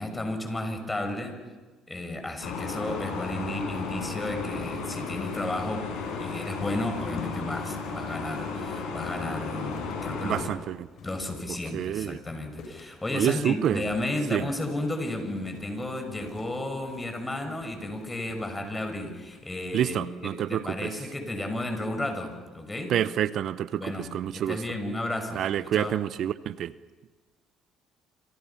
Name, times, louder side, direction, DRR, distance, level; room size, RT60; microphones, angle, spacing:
voice 1, 0.0-1.4 1.9-5.9 6.2-10.5 11.0-20.1 20.4-22.9 23.7-25.9, left 1 dB, 15° left, 6 dB, 6.2 m, -33 dB
sound 1, 2.4-10.4, left 4 dB, 75° left, 6.9 m, -34 dB
sound 2, 3.5-20.9, left 3 dB, 60° left, 7.6 m, -50 dB
voice 2, 10.2-10.9 11.7-12.2 13.1-13.8 14.3-14.5 19.7-20.9 22.9-24.6 25.3-26.7, right 10 dB, 60° right, 16 dB, 0.8 m, -28 dB
27.5 x 27.0 x 5.9 m, 1.3 s
supercardioid pair, 70°, 0 cm